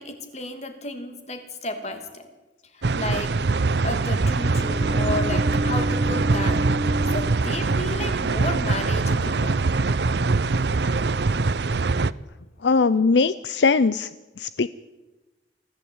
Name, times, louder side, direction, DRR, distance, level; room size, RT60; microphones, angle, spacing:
voice 1, 0.0-2.3 2.7-3.3 3.8-6.6 7.1-9.6, left 2 dB, 35° left, 7 dB, 2.7 m, -32 dB
sound 1, 2.8-12.1, right 3 dB, 65° right, 0.6 m, -23 dB
Bowed string instrument, 4.3-8.3, equal, 35° right, 1.2 m, -30 dB
voice 2, 12.6-14.1 14.4-14.7, left 4 dB, 75° left, 15 dB, 0.6 m, -20 dB
24.0 x 15.5 x 8.8 m, 1.1 s
head